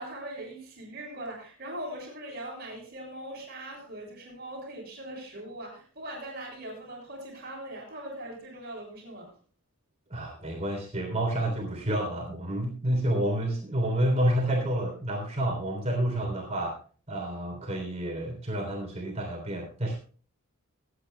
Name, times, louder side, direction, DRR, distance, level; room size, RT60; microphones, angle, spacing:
voice 1, 0.0-9.3, right 1 dB, 50° right, -1 dB, 6.9 m, -40 dB
voice 2, 10.1-16.8 17.1-20.0, right 1 dB, 30° right, 0 dB, 3.5 m, -29 dB
24.0 x 9.8 x 2.3 m, 0.40 s
head